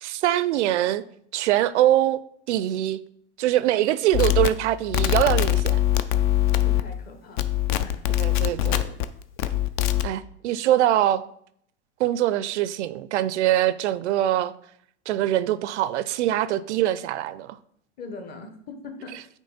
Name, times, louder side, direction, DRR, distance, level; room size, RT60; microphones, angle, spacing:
voice 1, 0.0-1.0 1.3-2.2 2.5-3.0 3.4-5.8 8.2-8.9 10.0-11.2 12.0-14.5 15.1-17.6, right 13 dB, 75° right, 0.5 m, -23 dB
sound 1, 4.1-7.1 7.4-9.0 9.4-10.1, left 13 dB, 45° left, 0.4 m, -22 dB
voice 2, 6.6-8.5 18.0-19.3, left 3 dB, 25° left, 0.9 m, -42 dB
8.9 x 3.1 x 4.0 m
supercardioid pair, 140°, 36 cm